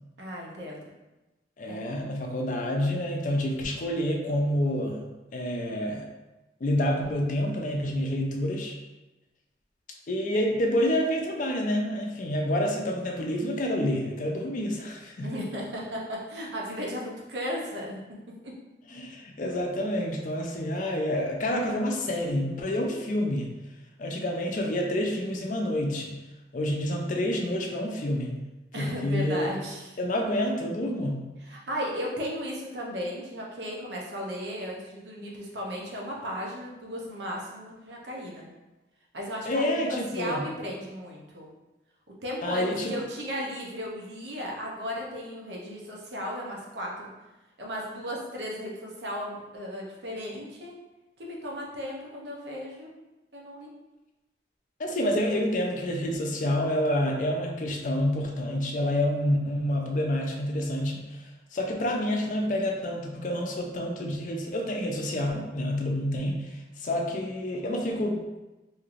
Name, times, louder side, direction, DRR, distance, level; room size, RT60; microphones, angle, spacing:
voice 1, 0.2-0.8 1.7-1.9 15.2-18.0 18.4-18.5 28.7-29.9 31.4-38.5 39.1-41.5 42.2-47.1 47.6-50.7 51.2-52.9 53.3-53.7, equal, 75° right, -2 dB, 0.7 m, -35 dB
voice 2, 1.6-5.0 5.3-6.0 6.6-8.8 10.1-15.3 18.9-23.5 24.0-26.2 26.5-28.4 28.8-29.5 30.0-31.2 39.5-40.4 42.4-42.9 54.8-61.2 61.5-68.2, left 1 dB, 45° left, 1 dB, 0.4 m, -28 dB
3.1 x 2.8 x 2.5 m, 1.1 s
head